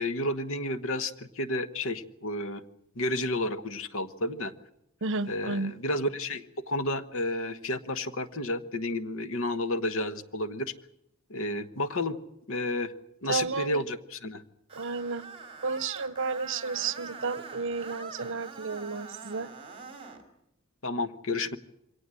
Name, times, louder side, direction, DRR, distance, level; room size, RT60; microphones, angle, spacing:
voice 1, 0.0-2.6 2.9-4.5 5.3-10.7 11.3-12.2 12.5-12.9 13.2-14.4 20.8-21.6, left 1 dB, 65° left, 12 dB, 1.2 m, -31 dB
voice 2, 5.0-5.7 13.3-13.8 14.8-15.3 15.6-19.5, right 4 dB, 60° right, 16 dB, 0.9 m, -32 dB
Screech, 14.7-20.2, right 4 dB, 25° right, 2.9 m, -44 dB
23.5 x 18.0 x 7.7 m, 0.83 s
head